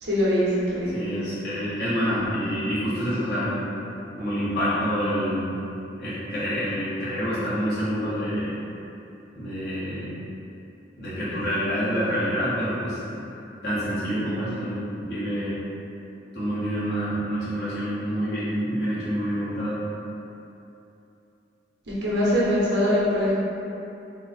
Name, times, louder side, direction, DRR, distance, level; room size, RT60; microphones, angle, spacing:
voice 1, 0.0-0.9 22.0-23.3, equal, 80° right, -7 dB, 1.0 m, -22 dB
voice 2, 0.9-3.6 4.2-5.5 6.0-8.5 9.3-10.1 11.0-13.0 13.6-15.6 16.3-19.8, equal, 65° left, -11 dB, 1.4 m, -27 dB
3.7 x 2.2 x 4.1 m, 2.8 s
head